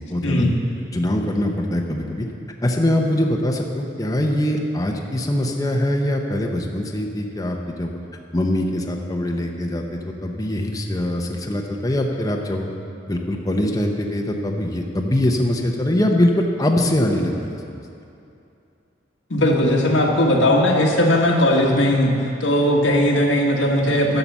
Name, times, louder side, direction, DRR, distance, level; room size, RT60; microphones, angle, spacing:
voice 1, 0.1-0.5 0.9-2.3 2.6-7.9 8.3-12.7 13.1-17.6, left 1 dB, 20° left, 1 dB, 0.8 m, -22 dB
voice 2, 19.3-22.1 22.4-24.2, left 1 dB, 90° left, 0 dB, 1.5 m, -18 dB
11.5 x 6.7 x 7.3 m, 2.7 s
head